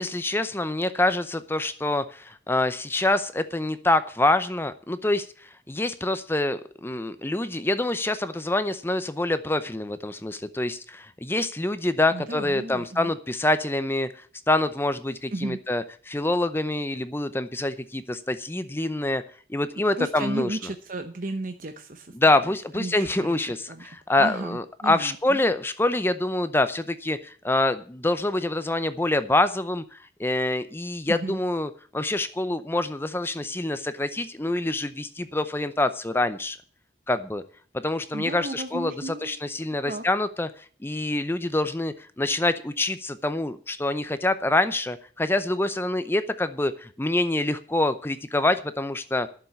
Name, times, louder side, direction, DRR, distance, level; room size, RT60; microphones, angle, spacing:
voice 1, 0.0-14.1 14.5-19.2 19.5-20.6 22.1-36.6 37.1-37.4 37.7-40.5 40.8-49.3, left 2 dB, 15° left, 12 dB, 0.6 m, -26 dB
voice 2, 12.1-13.1 15.3-15.6 20.0-22.4 22.7-25.4 31.1-31.4 38.1-39.4 39.8-40.0, right 2 dB, 50° right, 6 dB, 1.0 m, -34 dB
11.0 x 7.2 x 8.3 m, 0.42 s
head